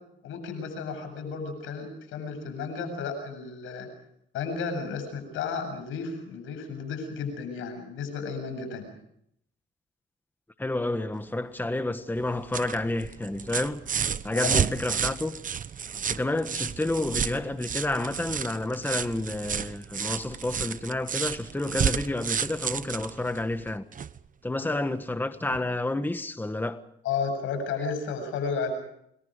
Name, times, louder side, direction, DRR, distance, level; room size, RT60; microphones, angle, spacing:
voice 1, 0.2-3.9 4.3-8.9 14.3-14.6 24.6-24.7 27.0-28.7, left 5 dB, 90° left, 7.9 m, -33 dB
voice 2, 10.6-13.8 14.2-15.4 16.1-23.8 24.4-26.8, left 2 dB, 10° left, 1.5 m, -30 dB
sound 1, 12.2-24.2 25.5-25.6, right 7 dB, 40° right, 0.9 m, -31 dB
29.0 x 22.5 x 5.2 m
cardioid pair, 90°, 20 cm